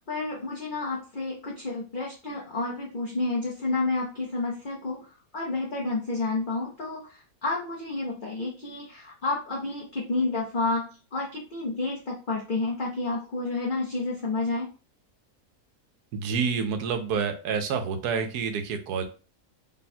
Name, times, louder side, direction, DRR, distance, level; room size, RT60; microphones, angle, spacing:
voice 1, 0.1-5.0 5.3-14.7, left 3 dB, 45° left, -3 dB, 0.7 m, -30 dB
voice 2, 16.1-19.0, right 6 dB, 75° right, 7 dB, 1.2 m, -28 dB
3.3 x 2.3 x 4.2 m, 0.34 s
omnidirectional pair, 1.7 m